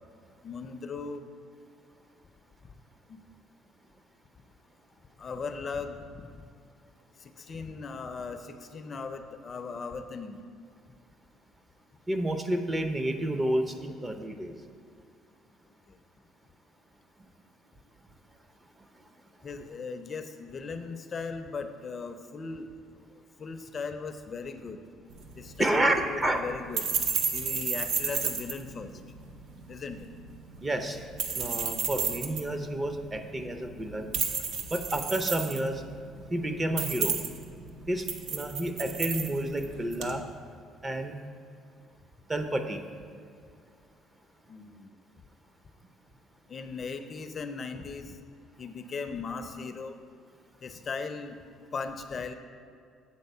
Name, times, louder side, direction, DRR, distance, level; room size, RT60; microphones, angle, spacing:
voice 1, 0.4-1.2 5.2-6.3 7.5-8.4 8.7-10.4 19.4-22.7 23.4-24.8 25.4-26.9 27.3-28.9 29.7-30.1 44.5-44.9 46.5-48.1 48.6-50.0 50.6-51.4 51.7-52.3, left 4 dB, 40° left, 8 dB, 0.4 m, -37 dB
voice 2, 12.1-14.5 25.6-26.4 30.6-31.1 31.3-34.1 34.7-35.8 36.3-37.1 37.9-40.2 40.8-41.2 42.3-42.8, right 1 dB, 20° right, 7 dB, 0.6 m, -30 dB
sound 1, 25.1-40.2, right 5 dB, 70° right, 0.6 m, -33 dB
7.9 x 4.0 x 5.4 m, 2.3 s
cardioid pair, 95°, 0 cm